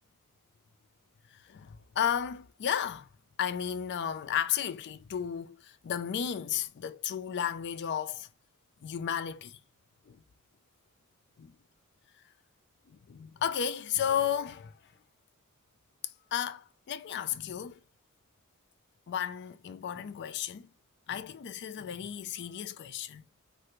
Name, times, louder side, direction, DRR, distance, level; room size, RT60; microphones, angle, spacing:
voice 1, 1.5-3.1 3.4-8.3 8.8-9.6 10.1-10.2 11.4-11.5 13.1-14.7 16.3-17.8 19.1-20.7 21.1-23.2, left 9 dB, 50° left, 0.3 m, -33 dB
3.3 x 2.5 x 3.0 m
head